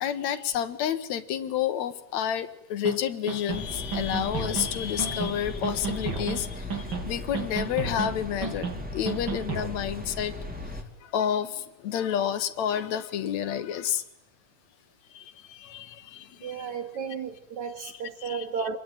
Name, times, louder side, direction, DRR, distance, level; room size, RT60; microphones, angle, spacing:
voice 1, 0.0-10.3 11.0-14.0 15.1-16.8 17.8-17.9 18.2-18.5, left 9 dB, 70° left, 2.3 m, -30 dB
sound 1, 2.8-3.0 3.3-3.6 3.9-4.7 5.0-5.3 5.6-6.4 6.7-7.1 7.3-8.1 8.4-8.7 9.1-9.7, right 5 dB, 40° right, 3.3 m, -32 dB
sound 2, 3.5-10.8, left 2 dB, 5° right, 2.0 m, -37 dB
voice 2, 16.4-18.8, right 6 dB, 75° right, 3.4 m, -33 dB
25.5 x 21.5 x 9.0 m
omnidirectional pair, 3.3 m